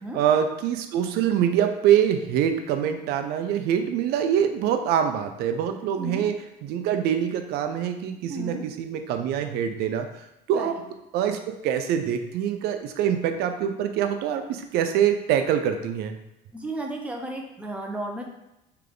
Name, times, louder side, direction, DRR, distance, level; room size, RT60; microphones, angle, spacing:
voice 1, 0.1-6.3 6.6-10.1 10.5-10.8 11.1-16.2, right 9 dB, 65° right, 7 dB, 0.5 m, -24 dB
voice 2, 5.9-6.2 8.3-8.6 10.5-10.8 16.5-18.2, right 1 dB, 5° right, 0 dB, 0.6 m, -33 dB
3.4 x 3.3 x 3.9 m, 0.91 s
cardioid pair, 145°, 18 cm